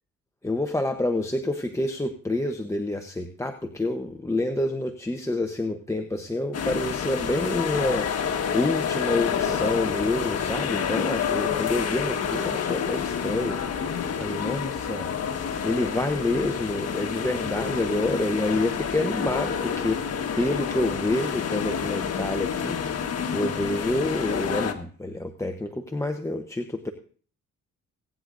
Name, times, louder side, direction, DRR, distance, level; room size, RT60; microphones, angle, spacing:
voice 1, 0.4-8.1 8.5-13.6 14.2-15.1 15.6-20.0 20.4-26.9, left 2 dB, 10° left, 5 dB, 0.9 m, -28 dB
sound 1, 6.5-24.7, left 7 dB, 55° left, 1.5 m, -28 dB
18.5 x 9.7 x 2.6 m, 0.43 s
cardioid pair, 90°, 30 cm